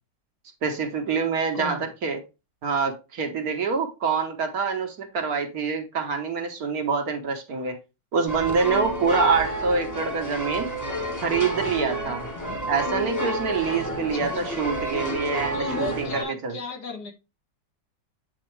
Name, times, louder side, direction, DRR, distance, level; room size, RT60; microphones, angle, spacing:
voice 1, 0.6-2.2 2.6-7.8 8.1-10.7 11.2-12.2 12.7-16.6, right 5 dB, 60° right, 1.4 m, -26 dB
sound 1, 8.3-16.2, right 1 dB, 10° left, 1.1 m, -30 dB
voice 2, 14.1-14.5 15.5-17.1, left 3 dB, 60° left, 2.0 m, -34 dB
8.7 x 4.1 x 3.1 m
omnidirectional pair, 1.9 m